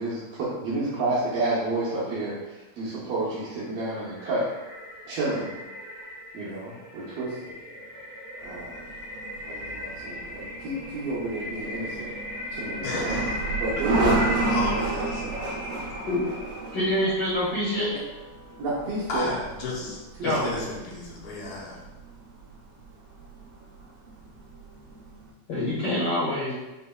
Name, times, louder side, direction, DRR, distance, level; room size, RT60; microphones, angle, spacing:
voice 1, 0.0-4.5 5.1-5.5 6.3-7.6 8.4-8.7 9.4-12.1 12.5-13.3 13.6-14.6 15.2-15.4 18.6-19.3 19.8-19.9 20.2-20.5, right 2 dB, 70° right, -9 dB, 1.6 m, -30 dB
sound 1, 3.5-16.8, left 1 dB, 55° right, 0.9 m, -37 dB
car crash interior ambience w television next door, 8.4-25.3, right 2 dB, 90° right, 1.3 m, -33 dB
voice 2, 12.8-13.3 14.5-15.8 19.1-21.8, left 3 dB, 75° left, -4 dB, 2.1 m, -33 dB
voice 3, 16.7-17.9 20.2-20.6 25.5-26.6, left 1 dB, 60° left, -8 dB, 1.7 m, -26 dB
5.4 x 3.2 x 2.2 m, 1.1 s
omnidirectional pair, 3.6 m